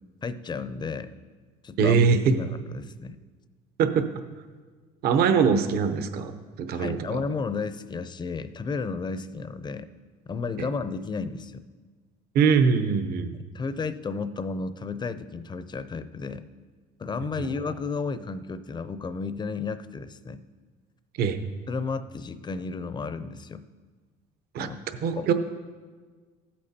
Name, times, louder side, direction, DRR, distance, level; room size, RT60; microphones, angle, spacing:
voice 1, 0.2-1.1 1.6-2.0 2.3-3.2 6.7-9.9 10.3-11.6 13.4-16.5 17.0-20.4 21.7-23.6 24.6-24.8 25.2-25.3, left 4 dB, 25° left, 13 dB, 0.6 m, -33 dB
voice 2, 1.8-2.3 3.8-4.1 5.0-6.3 6.6-7.2 12.3-13.3 21.2-21.4 24.5-24.7 25.0-25.3, right 6 dB, 60° right, 9 dB, 0.8 m, -22 dB
15.5 x 8.7 x 2.9 m, 1.5 s
supercardioid pair, 90°, 19 cm